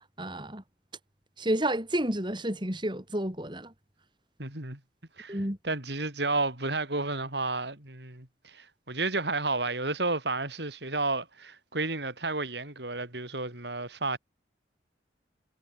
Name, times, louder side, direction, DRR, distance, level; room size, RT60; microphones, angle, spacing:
voice 1, 0.2-0.6 1.4-3.7 5.3-5.6, right 1 dB, 25° right, 4.9 m, -30 dB
voice 2, 4.4-4.8 5.2-5.4 5.6-14.2, right 3 dB, 70° right, 5.6 m, -31 dB
head